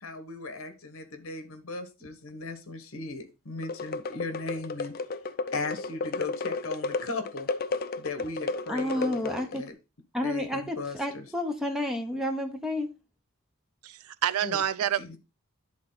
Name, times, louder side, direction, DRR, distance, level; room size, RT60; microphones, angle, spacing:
voice 1, 0.0-4.9 5.5-7.5 8.0-9.7 10.2-11.2 14.4-14.6 15.0-15.2, left 3 dB, 70° left, 1.3 m, -37 dB
sound 1, 3.6-9.7, left 3 dB, 45° left, 0.4 m, -33 dB
voice 2, 8.7-9.6 10.1-12.9, left 1 dB, ahead, 0.9 m, -30 dB
voice 3, 13.8-15.2, right 10 dB, 85° right, 0.4 m, -28 dB
10.5 x 3.9 x 3.8 m
head